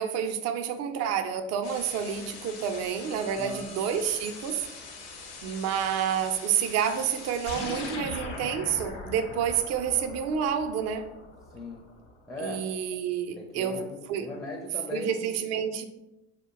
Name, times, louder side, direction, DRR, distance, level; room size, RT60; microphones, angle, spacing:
voice 1, 0.0-4.7 5.4-11.1 12.4-13.8 14.1-14.3 14.9-15.8, right 8 dB, 50° right, 8 dB, 0.4 m, -29 dB
sound 1, 1.6-8.0, left 4 dB, 45° left, 0.7 m, -44 dB
voice 2, 3.4-3.7 11.5-11.9 12.3-12.7 13.3-15.3, left 1 dB, 10° left, -2 dB, 0.5 m, -38 dB
sound 2, 7.5-12.1, left 2 dB, 85° left, 0.7 m, -40 dB
2.4 x 2.0 x 3.6 m, 0.94 s
hypercardioid pair, 70°, 35 cm